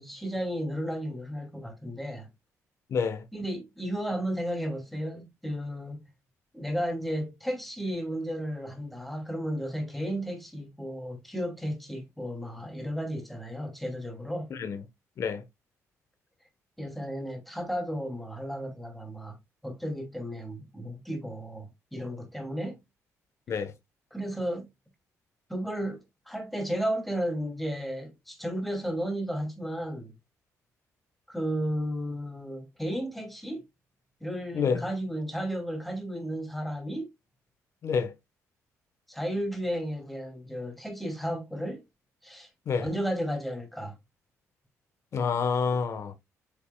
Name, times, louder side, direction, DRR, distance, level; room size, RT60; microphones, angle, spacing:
voice 1, 0.0-2.3 3.3-6.0 6.5-14.5 16.8-19.4 19.6-22.8 24.1-24.7 25.5-30.1 31.3-33.6 34.2-37.1 39.1-41.8 42.2-42.5 42.8-44.0, equal, ahead, 2.7 m, -33 dB
voice 2, 2.9-3.2 14.5-14.8 15.2-15.4 23.5-23.7 34.5-34.8 37.8-38.1 42.7-42.9 45.1-46.1, left 6 dB, 55° left, 1.2 m, -28 dB
8.5 x 5.5 x 2.3 m
cardioid pair, 110°, 6 cm